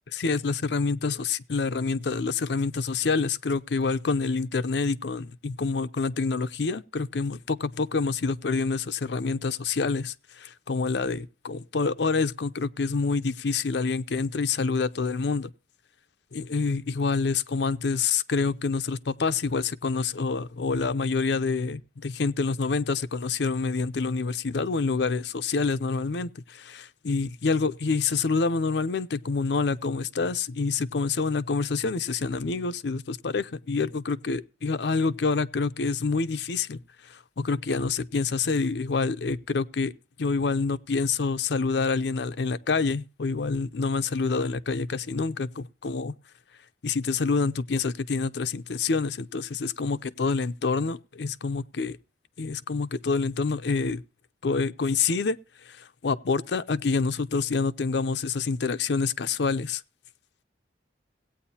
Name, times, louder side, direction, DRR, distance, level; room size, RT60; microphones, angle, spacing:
voice 1, 0.1-15.5 16.3-39.9 40.2-46.1 46.8-52.0 52.4-54.0 54.4-55.4 55.6-59.8, left 4 dB, 70° left, 0.6 m, -27 dB
17.5 x 8.9 x 2.8 m
head